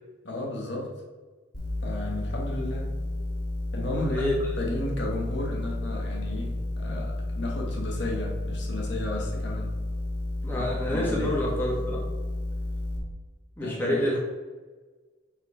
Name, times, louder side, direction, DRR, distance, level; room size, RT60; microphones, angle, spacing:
voice 1, 0.2-0.9 1.8-2.9 3.7-9.8 10.5-11.4 13.6-14.0, left 1 dB, 65° left, -1 dB, 1.2 m, -34 dB
sound 1, 1.5-13.0, left 1 dB, 45° left, 1.9 m, -31 dB
voice 2, 4.0-4.3 10.4-12.0 13.6-14.2, left 1 dB, 10° left, -5 dB, 1.3 m, -28 dB
4.4 x 4.2 x 5.6 m, 1.3 s
head